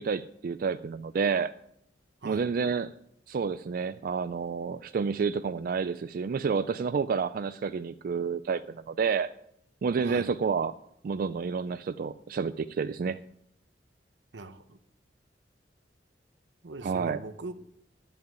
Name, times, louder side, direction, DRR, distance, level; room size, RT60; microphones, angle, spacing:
voice 1, 0.0-1.5 2.2-2.9 3.3-9.3 9.8-10.8 11.0-13.2 16.8-17.2, right 5 dB, 50° right, 11 dB, 0.3 m, -29 dB
voice 2, 10.0-10.3 14.3-14.8 16.6-17.5, right 3 dB, 80° right, 10 dB, 1.0 m, -41 dB
11.5 x 5.7 x 8.9 m, 0.76 s
head